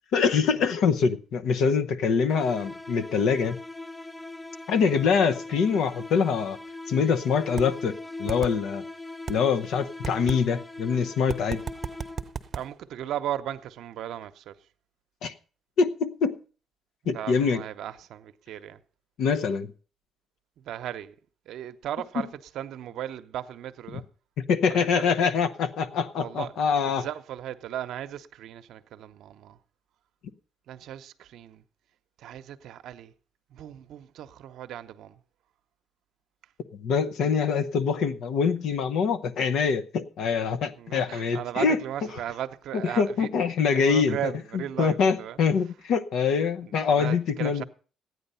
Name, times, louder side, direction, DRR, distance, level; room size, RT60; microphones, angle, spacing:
voice 1, 0.1-3.6 4.7-6.6 6.9-8.8 9.3-11.6 15.2-15.3 15.8-16.4 17.1-17.6 19.2-19.7 23.9-24.0 24.5-27.1 36.7-41.8 42.7-47.6, left 6 dB, 80° left, 0.9 m, -24 dB
sound 1, 2.3-12.5, left 2 dB, 15° left, 0.6 m, -40 dB
sound 2, 7.6-7.7 8.3-8.5 9.3-9.4 10.0-10.4 11.3-12.6, right 6 dB, 45° right, 0.8 m, -32 dB
voice 2, 12.5-14.6 17.1-18.8 20.6-21.1 21.5-24.0 24.7-25.1 26.2-26.5 26.8-29.6 30.7-31.6 32.2-33.1 33.5-35.2 40.8-43.3 43.7-45.4 46.6-47.6, right 11 dB, 80° right, 0.7 m, -36 dB
13.5 x 9.6 x 5.5 m
cardioid pair, 90°, 0 cm